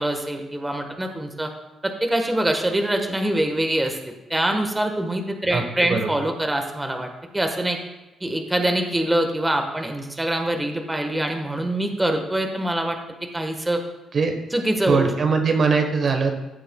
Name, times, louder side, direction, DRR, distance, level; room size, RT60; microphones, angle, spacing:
voice 1, 0.0-1.5 1.8-4.0 4.3-7.1 7.3-7.8 8.2-13.0 13.3-13.8 14.5-15.1, right 1 dB, 10° right, 4 dB, 1.3 m, -24 dB
voice 2, 5.5-6.1 14.1-14.3 14.9-16.3, right 5 dB, 50° right, 4 dB, 1.1 m, -21 dB
15.0 x 7.6 x 2.3 m, 1.1 s
cardioid pair, 90°, 0 cm